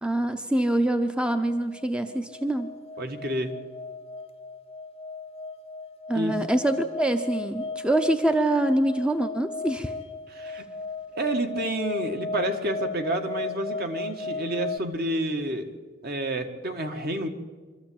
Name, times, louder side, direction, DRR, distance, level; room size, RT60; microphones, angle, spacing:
voice 1, 0.0-2.8 6.1-9.9, right 1 dB, 5° right, 7 dB, 0.7 m, -25 dB
sound 1, 1.4-14.8, left 3 dB, 30° left, 0.6 m, -36 dB
voice 2, 3.0-3.5 6.1-6.3 10.3-10.7 11.2-15.7 16.0-17.3, right 1 dB, 50° right, 5 dB, 1.8 m, -29 dB
24.5 x 14.0 x 8.7 m, 1.5 s
head